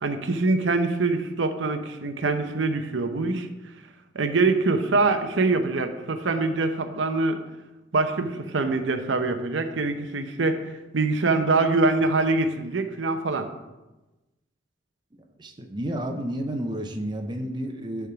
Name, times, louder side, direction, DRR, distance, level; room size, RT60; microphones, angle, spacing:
voice 1, 0.0-3.5 4.1-7.4 7.9-10.6 10.9-13.5, right 3 dB, 85° right, 7 dB, 0.7 m, -24 dB
voice 2, 15.4-18.1, right 1 dB, 25° right, 3 dB, 0.6 m, -31 dB
10.5 x 3.6 x 5.7 m, 1.1 s
head